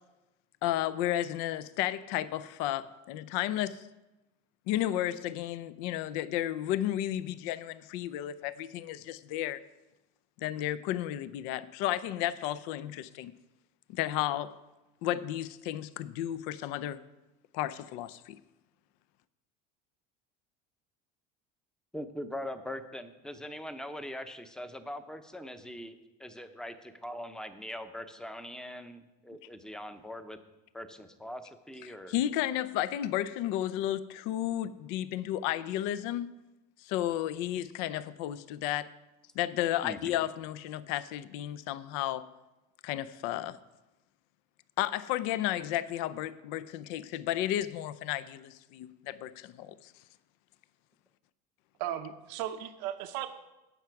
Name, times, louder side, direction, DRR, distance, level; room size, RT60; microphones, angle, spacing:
voice 1, 0.6-3.8 4.7-9.6 10.4-13.3 13.9-14.6 15.0-17.0 17.5-18.4 32.1-36.3 36.8-38.9 39.4-42.3 42.8-43.6 44.8-49.9, left 13 dB, 70° left, 15 dB, 0.5 m, -33 dB
voice 2, 21.9-30.4 30.7-32.1 39.8-40.2, left 1 dB, 5° left, 9 dB, 0.7 m, -42 dB
voice 3, 51.8-53.3, right 11 dB, 80° right, 8 dB, 0.7 m, -36 dB
17.0 x 5.9 x 4.7 m, 1.0 s
cardioid pair, 140°, 21 cm